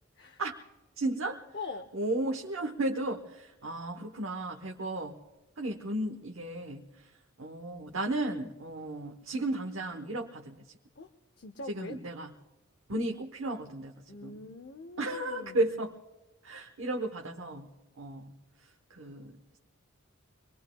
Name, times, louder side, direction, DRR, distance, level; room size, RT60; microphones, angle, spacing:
voice 1, 1.0-1.4 1.9-5.2 5.6-7.1 7.4-10.7 11.7-12.3 12.9-14.4 15.0-16.0 16.4-17.7 18.0-18.3 18.9-19.3, right 2 dB, 75° right, 3 dB, 1.0 m, -34 dB
voice 2, 1.5-1.9 11.0-11.1 11.4-12.0 14.1-15.7, left 3 dB, 55° left, 7 dB, 0.7 m, -43 dB
25.0 x 21.5 x 2.3 m, 1.1 s
head